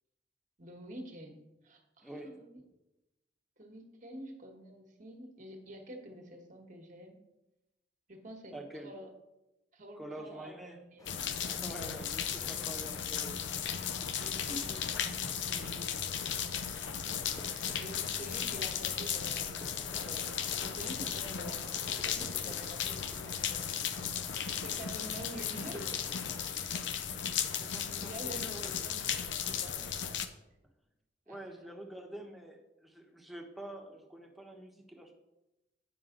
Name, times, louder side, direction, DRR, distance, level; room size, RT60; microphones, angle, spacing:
voice 1, 0.6-2.6 3.6-7.2 8.1-8.5 8.8-9.1 9.7-11.2 11.7-12.1 14.5-14.8 15.5-15.9 16.2-16.3 16.7-24.1 24.5-25.9 27.4-27.7 28.0-29.9 31.3-31.9, equal, 45° right, 4 dB, 1.3 m, -48 dB
voice 2, 2.0-2.4 8.5-8.9 10.0-10.8 11.3-14.6 27.6-28.9 30.0-30.2 31.3-35.1, right 1 dB, ahead, 1 dB, 1.0 m, -47 dB
sound 1, 11.0-26.5, left 1 dB, 20° left, 0.6 m, -53 dB
sound 2, 11.1-30.3, left 8 dB, 80° left, 0.6 m, -36 dB
8.8 x 5.5 x 3.8 m, 0.96 s
head